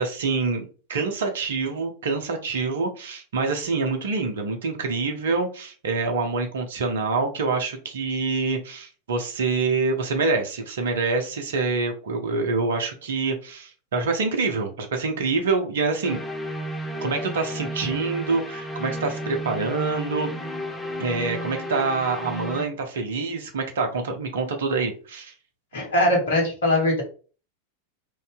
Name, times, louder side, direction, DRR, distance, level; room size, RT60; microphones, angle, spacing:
voice 1, 0.0-16.2 17.0-20.3 21.0-25.3, right 4 dB, 60° right, 4 dB, 0.8 m, -26 dB
sound 1, 16.0-22.7, equal, 10° left, 0.7 m, -33 dB
voice 2, 25.7-27.0, left 1 dB, 60° left, -1 dB, 1.5 m, -21 dB
3.1 x 2.7 x 3.6 m, 0.37 s
figure-of-eight pair, 90°, 0 cm